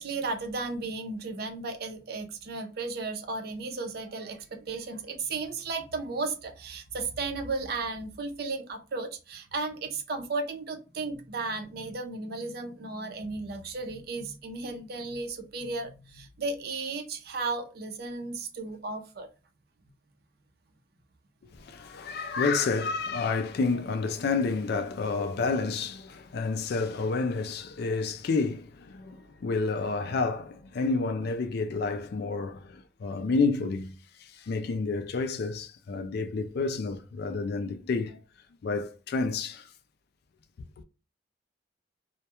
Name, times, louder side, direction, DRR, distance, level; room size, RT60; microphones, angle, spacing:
voice 1, 0.0-19.3, right 3 dB, 55° right, 0.5 m, -34 dB
voice 2, 21.5-38.2 38.6-39.7, left 4 dB, 60° left, 0.3 m, -30 dB
2.2 x 2.1 x 2.8 m
head